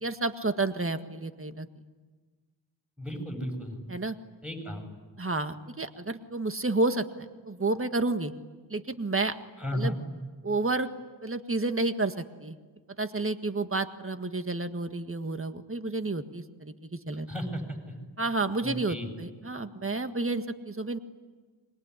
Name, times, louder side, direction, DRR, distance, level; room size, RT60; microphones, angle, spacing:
voice 1, 0.0-1.7 3.9-4.2 5.2-8.3 8.7-9.4 9.7-9.9 10.4-10.9 11.2-12.6 13.0-17.3 18.2-21.0, right 2 dB, 25° right, 8 dB, 1.7 m, -30 dB
voice 2, 3.0-3.8 4.4-4.8 9.6-10.0 17.3-17.9 18.6-19.1, equal, ahead, 4 dB, 8.0 m, -34 dB
25.5 x 22.5 x 10.0 m, 1.4 s
cardioid pair, 50°, 48 cm